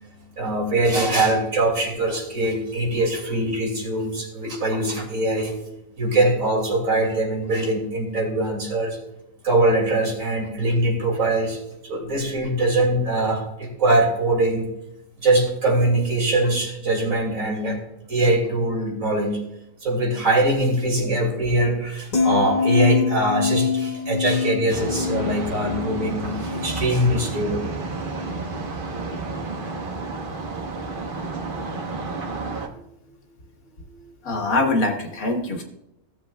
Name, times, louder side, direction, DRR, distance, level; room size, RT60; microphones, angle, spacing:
voice 1, 0.3-5.5 6.0-9.0 9.4-14.7 15.2-17.8 18.1-19.4 19.8-27.6, right 1 dB, 70° right, 1 dB, 2.7 m, -22 dB
sound 1, 22.1-28.4 28.7-29.1, left 5 dB, 30° left, 1.3 m, -26 dB
sound 2, 24.7-32.7, right 3 dB, 40° right, 1.1 m, -31 dB
voice 2, 34.2-35.6, left 2 dB, 80° left, 3 dB, 1.9 m, -23 dB
16.0 x 7.4 x 2.2 m, 0.85 s
omnidirectional pair, 1.5 m